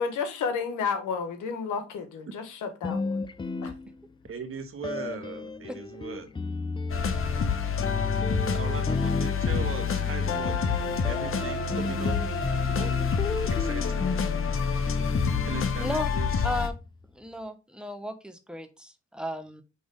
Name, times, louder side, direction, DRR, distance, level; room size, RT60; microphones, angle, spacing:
voice 1, 0.0-3.2 3.6-3.7, left 5 dB, 80° left, 1.3 m, -31 dB
sound 1, 2.8-4.3 4.8-17.0, left 3 dB, 15° left, 0.4 m, -33 dB
voice 2, 4.2-6.3 8.5-10.7 11.0-12.2 12.5-13.0 13.6-14.1 15.4-16.4, right 6 dB, 45° right, 1.3 m, -39 dB
sound 2, 6.9-16.7, left 6 dB, 45° left, 1.0 m, -28 dB
voice 3, 17.1-19.6, left 1 dB, 5° right, 1.0 m, -34 dB
5.4 x 3.4 x 5.1 m
cardioid pair, 90°, 30 cm